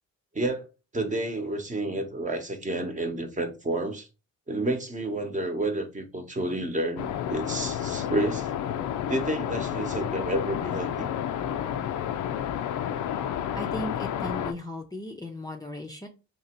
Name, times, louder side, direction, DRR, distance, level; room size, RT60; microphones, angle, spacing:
voice 1, 0.3-0.7 0.9-4.1 4.5-8.5 9.1-11.1, right 1 dB, 25° right, 0.9 m, -30 dB
Outside wind ambience, 7.0-14.5, left 9 dB, 85° left, 0.5 m, -30 dB
voice 2, 13.6-16.1, left 1 dB, 15° left, 0.6 m, -36 dB
2.9 x 2.7 x 4.3 m
cardioid pair, 90°, 30 cm